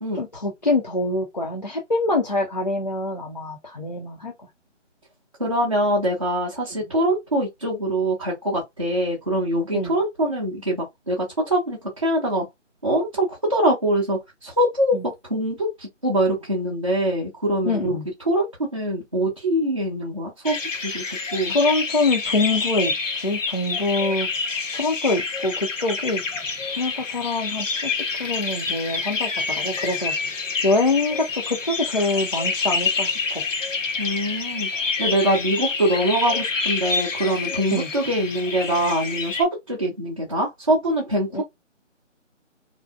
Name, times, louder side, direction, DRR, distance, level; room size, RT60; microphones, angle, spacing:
voice 1, 0.1-4.3 9.7-10.0 14.9-15.1 17.6-18.1 21.5-24.3 24.7-26.2 26.8-30.1 30.6-33.4 37.7-37.9 41.3-41.4, left 2 dB, 35° left, 0.4 m, -25 dB
voice 2, 5.4-12.4 12.8-15.0 15.3-18.0 18.3-20.6 20.8-21.0 21.3-21.6 34.0-41.4, right 1 dB, 25° right, 0.5 m, -23 dB
sound 1, 20.4-39.4, left 4 dB, 80° left, 0.8 m, -27 dB
2.6 x 2.1 x 2.3 m
figure-of-eight pair, 155°, 38 cm